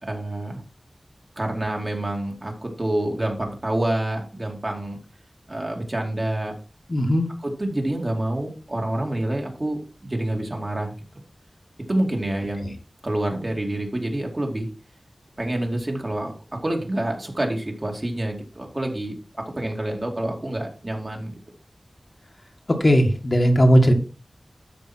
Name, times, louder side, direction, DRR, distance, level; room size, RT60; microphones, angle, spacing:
voice 1, 0.0-0.6 1.4-5.0 5.5-6.6 7.4-11.2 11.9-12.7 13.0-14.7 15.4-16.3 16.6-21.4, right 1 dB, 40° right, 1 dB, 2.6 m, -27 dB
voice 2, 6.9-7.3 12.6-12.7 22.7-23.9, equal, 45° left, 3 dB, 1.9 m, -17 dB
13.0 x 5.1 x 4.4 m, 0.34 s
wide cardioid pair, 70°, 0 cm